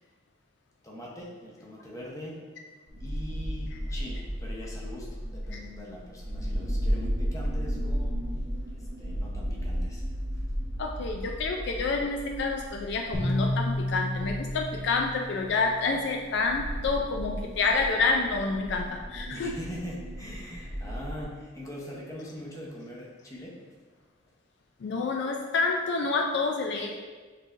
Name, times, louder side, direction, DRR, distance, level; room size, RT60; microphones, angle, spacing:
voice 1, 0.8-2.4 3.0-8.3 8.7-10.0 19.3-23.6, left 1 dB, 15° left, -3 dB, 0.8 m, -42 dB
sound 1, 2.9-21.2, equal, 55° right, 0.9 m, -34 dB
voice 2, 10.8-19.6 24.8-26.9, left 3 dB, 60° left, 2 dB, 0.4 m, -28 dB
sound 2, 13.1-16.4, left 1 dB, 20° right, 0.8 m, -32 dB
6.7 x 3.1 x 2.5 m, 1.4 s
head